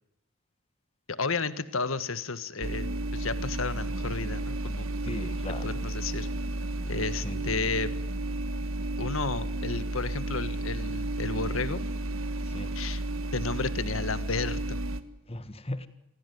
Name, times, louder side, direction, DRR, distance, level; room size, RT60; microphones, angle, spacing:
voice 1, 1.1-4.9 5.6-6.3 6.9-7.9 9.0-11.8 12.7-13.0 13.3-14.8, left 4 dB, 75° left, 1.6 m, -32 dB
sound 1, 2.6-15.0, right 2 dB, 80° right, 1.7 m, -32 dB
voice 2, 5.0-5.7 7.2-7.5 12.4-12.8 15.3-15.9, left 1 dB, 30° left, 1.6 m, -38 dB
26.0 x 17.0 x 9.4 m
head